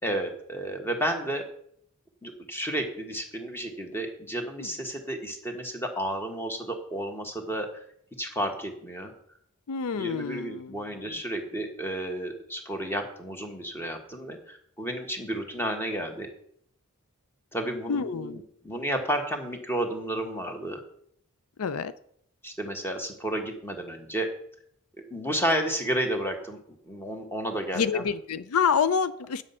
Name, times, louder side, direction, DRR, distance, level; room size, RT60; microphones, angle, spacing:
voice 1, 0.0-1.4 2.2-7.8 8.2-9.1 9.9-16.3 17.5-20.8 22.4-24.3 25.1-28.0, right 1 dB, 10° left, 4 dB, 1.5 m, -32 dB
voice 2, 9.7-10.7 17.9-18.4 21.6-21.9 27.7-29.4, left 6 dB, 80° left, 14 dB, 0.5 m, -27 dB
9.6 x 7.6 x 5.6 m, 0.67 s
head